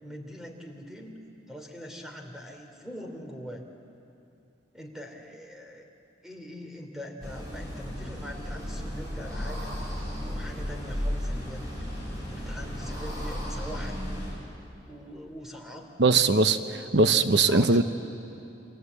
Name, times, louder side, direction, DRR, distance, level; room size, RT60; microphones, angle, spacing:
voice 1, 0.0-1.1 1.5-3.6 4.7-5.9 6.2-9.7 10.2-11.7 12.3-13.9 14.8-15.9 17.3-17.8, equal, 5° right, 2 dB, 3.1 m, -42 dB
sound 1, 7.2-14.4, equal, 20° right, 7.7 m, -34 dB
voice 2, 16.0-16.6 16.9-17.8, right 3 dB, 75° right, 10 dB, 0.9 m, -20 dB
28.5 x 25.0 x 8.3 m, 2.7 s
head